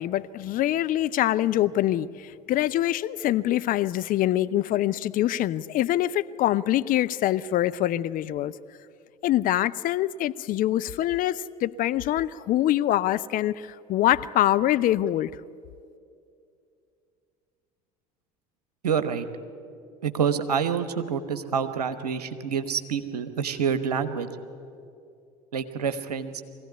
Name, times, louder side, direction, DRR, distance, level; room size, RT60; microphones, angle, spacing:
voice 1, 0.0-8.5 9.2-15.3, left 13 dB, 45° left, 14 dB, 0.6 m, -24 dB
voice 2, 18.8-19.3 20.0-24.3 25.5-26.4, right 7 dB, 85° right, 10 dB, 1.2 m, -27 dB
23.0 x 16.5 x 9.6 m, 2.5 s
figure-of-eight pair, 70°, 20 cm